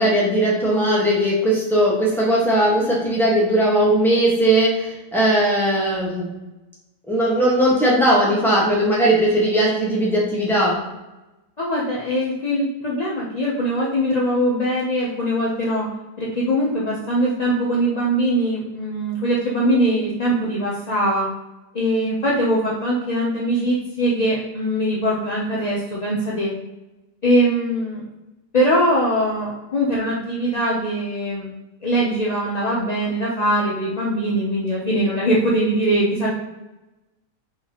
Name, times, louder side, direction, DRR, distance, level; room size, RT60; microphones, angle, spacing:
voice 1, 0.0-6.3 7.1-10.8, right 1 dB, ahead, -6 dB, 1.1 m, -18 dB
voice 2, 11.6-15.9 16.2-21.3 21.7-26.5 27.2-28.0 28.5-31.5 31.8-36.3, equal, 50° left, -5 dB, 0.4 m, -21 dB
4.5 x 3.9 x 2.9 m, 1.0 s
omnidirectional pair, 1.8 m